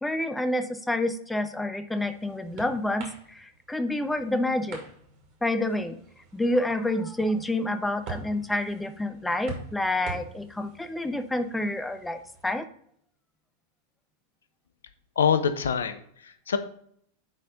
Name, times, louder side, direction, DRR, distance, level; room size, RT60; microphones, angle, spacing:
voice 1, 0.0-4.8 5.4-6.0 6.3-12.7, left 1 dB, 5° left, 10 dB, 0.6 m, -28 dB
sound 1, 1.6-12.6, right 5 dB, 45° right, 2.5 m, -45 dB
voice 2, 15.2-16.6, left 7 dB, 65° left, 11 dB, 0.6 m, -25 dB
9.8 x 4.2 x 3.7 m, 0.66 s
figure-of-eight pair, 90°, 0 cm